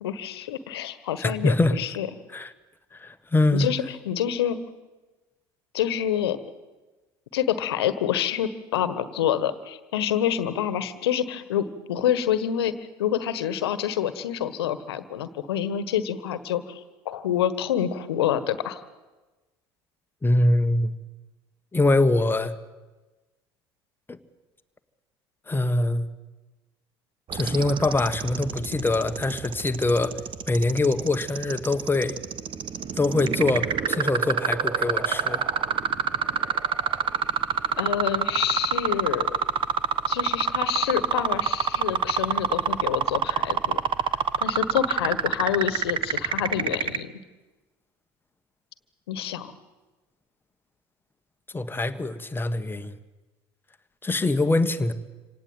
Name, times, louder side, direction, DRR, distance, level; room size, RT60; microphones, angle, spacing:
voice 1, 0.0-2.1 3.5-4.6 5.7-6.4 7.3-12.7 13.0-18.8 37.8-39.4 40.1-43.8 44.4-47.1 49.1-49.5, left 10 dB, 80° left, 13 dB, 1.5 m, -27 dB
voice 2, 1.2-1.8 2.3-2.5 2.9-3.7 20.2-21.0 21.7-22.5 24.1-24.2 25.5-26.1 27.3-30.1 30.5-32.2 33.0-35.4 51.5-52.9 54.0-54.9, left 2 dB, 15° left, 9 dB, 1.7 m, -23 dB
sound 1, 27.3-47.0, right 8 dB, 40° right, 1.2 m, -26 dB
26.5 x 18.0 x 9.1 m, 1.2 s
hypercardioid pair, 70°, 13 cm